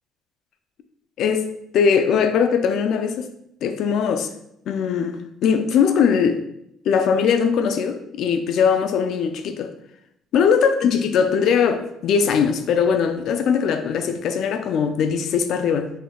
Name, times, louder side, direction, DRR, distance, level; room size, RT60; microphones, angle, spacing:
voice 1, 1.2-3.3 3.6-4.3 4.7-6.4 6.9-9.7 10.3-15.9, left 6 dB, 60° left, 0.3 m, -20 dB
3.7 x 3.4 x 2.2 m
cardioid pair, 125°, 0 cm